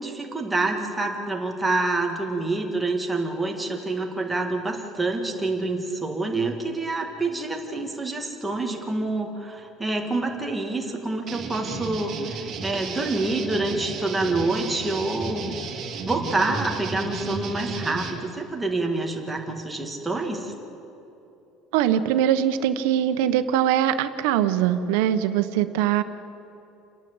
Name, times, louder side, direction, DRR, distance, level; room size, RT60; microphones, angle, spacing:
voice 1, 0.0-15.5 16.1-20.5, right 2 dB, 5° right, 1 dB, 2.0 m, -27 dB
sound 1, 11.3-18.1, right 4 dB, 30° right, 3.0 m, -34 dB
voice 2, 21.7-26.0, right 10 dB, 80° right, 10 dB, 1.2 m, -22 dB
29.5 x 11.5 x 8.0 m, 2.9 s
cardioid pair, 170°, 0 cm